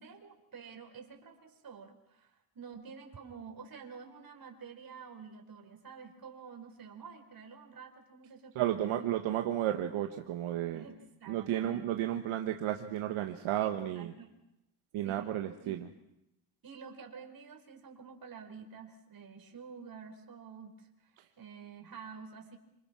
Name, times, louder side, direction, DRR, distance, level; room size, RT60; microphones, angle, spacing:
voice 1, 0.0-9.2 10.7-12.0 13.5-14.3 15.0-15.4 15.6-15.8 16.6-22.6, right 6 dB, 45° right, 4 dB, 5.0 m, -49 dB
voice 2, 8.5-10.8 11.3-14.1 14.9-15.8, right 12 dB, 80° right, 5 dB, 1.5 m, -33 dB
27.0 x 26.5 x 6.2 m, 0.84 s
cardioid pair, 95°, 48 cm